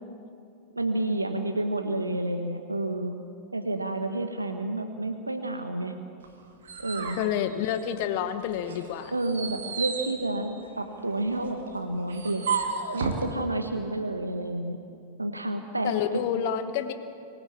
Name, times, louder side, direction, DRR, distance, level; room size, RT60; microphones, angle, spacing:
voice 1, 0.8-3.2 3.5-5.9 6.8-7.2 9.1-12.5 12.9-14.8 15.2-16.2, right 2 dB, 80° right, 6 dB, 1.1 m, -30 dB
sound 1, 6.2-8.2 8.6-13.3, right 5 dB, 65° right, 2.1 m, -34 dB
voice 2, 7.2-9.1 15.8-16.9, left 9 dB, 50° left, 10 dB, 1.1 m, -29 dB
24.5 x 15.5 x 8.5 m, 2.5 s
figure-of-eight pair, 90°, 0 cm